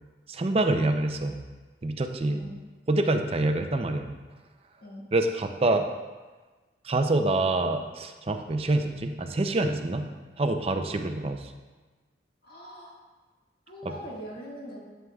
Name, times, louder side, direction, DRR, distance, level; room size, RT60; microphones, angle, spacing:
voice 1, 0.3-1.4 1.8-2.4 2.9-4.1 5.1-5.9 6.8-10.1 10.4-11.5 13.8-13.9, right 2 dB, 30° right, 6 dB, 0.5 m, -26 dB
voice 2, 12.4-13.0 13.7-14.8, equal, 55° left, -4 dB, 1.8 m, -41 dB
11.0 x 7.4 x 2.3 m, 1.3 s
head